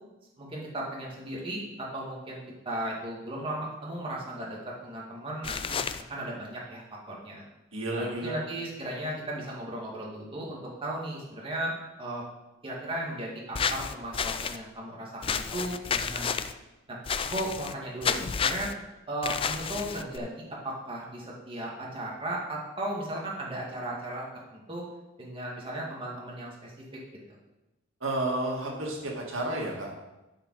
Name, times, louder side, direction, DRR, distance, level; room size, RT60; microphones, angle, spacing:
voice 1, 0.4-5.8 6.1-7.4 7.9-12.2 12.6-16.4 16.9-17.0 17.2-18.7 19.1-24.8 25.2-26.7 27.3-27.4, right 1 dB, 25° right, -4 dB, 2.2 m, -36 dB
sound 1, 5.4-6.0 13.5-14.6 15.2-16.5 17.1-17.7 18.0-18.7 19.2-20.2, left 6 dB, 30° left, 0.4 m, -30 dB
voice 2, 7.7-8.4 28.0-29.9, right 1 dB, 90° right, -1 dB, 2.0 m, -31 dB
11.5 x 5.2 x 4.8 m, 1.0 s
head